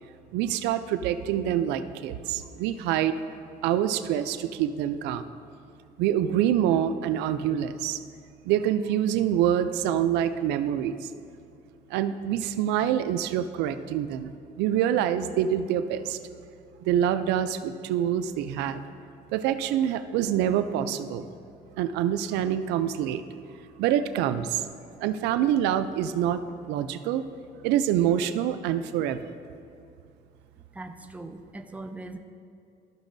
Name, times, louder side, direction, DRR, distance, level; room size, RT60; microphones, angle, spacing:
voice 1, 0.3-3.2 3.6-5.3 6.0-8.0 8.5-11.1 11.9-14.3 14.6-16.2 16.9-18.8 19.3-21.3 21.8-23.2 23.8-24.6 25.0-26.4 26.7-27.3 27.6-29.3, right 10 dB, 90° right, 11 dB, 0.4 m, -26 dB
voice 2, 30.7-32.2, right 2 dB, 10° right, 6 dB, 0.5 m, -40 dB
13.0 x 6.0 x 2.6 m, 2.6 s
cardioid pair, 110°, 17 cm